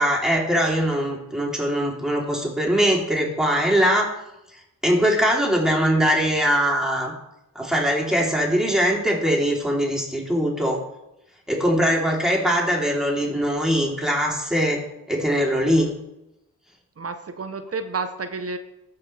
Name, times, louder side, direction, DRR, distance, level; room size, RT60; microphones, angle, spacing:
voice 1, 0.0-4.1 4.8-7.1 7.5-10.8 11.5-14.8 15.1-15.9, equal, ahead, -3 dB, 3.2 m, -21 dB
voice 2, 17.0-18.6, right 4 dB, 40° right, 8 dB, 0.8 m, -30 dB
14.0 x 5.7 x 3.3 m, 0.89 s
cardioid pair, 50°, 35 cm